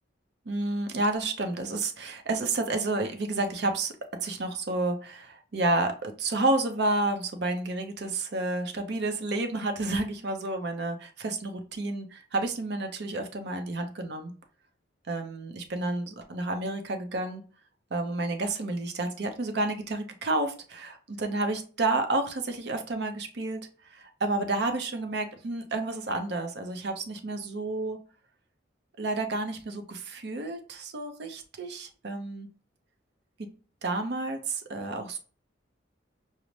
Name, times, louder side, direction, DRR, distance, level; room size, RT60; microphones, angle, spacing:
voice 1, 0.5-3.9 4.2-14.3 15.1-17.4 17.9-28.0 29.0-32.5 33.4-33.5 33.8-35.2, right 2 dB, 60° right, 6 dB, 0.6 m, -30 dB
5.1 x 2.0 x 3.1 m, 0.39 s
head